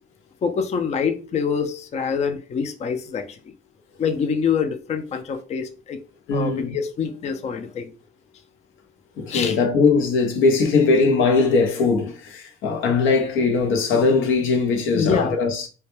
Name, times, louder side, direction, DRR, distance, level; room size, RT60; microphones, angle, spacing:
voice 1, 0.4-3.4 4.0-6.0 6.3-7.9 9.3-9.6 14.9-15.4, left 6 dB, 35° left, 0.4 m, -25 dB
voice 2, 6.3-6.8 9.2-15.7, left 4 dB, 85° left, 0.6 m, -20 dB
2.1 x 2.1 x 2.9 m
cardioid pair, 90°, 20 cm